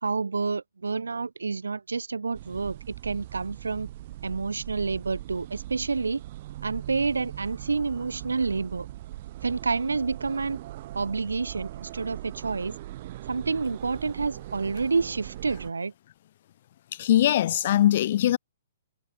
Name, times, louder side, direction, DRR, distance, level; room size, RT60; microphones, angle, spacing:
voice 1, 0.0-3.9 4.2-6.2 6.6-8.9 9.4-10.6 10.9-12.7 13.3-15.9, right 4 dB, 70° right, 0.9 m, -29 dB
sound 1, 2.3-15.7, right 15 dB, 40° right, 0.9 m, -40 dB
voice 2, 17.0-18.4, left 12 dB, 45° left, 0.4 m, -21 dB
figure-of-eight pair, 120°, 0 cm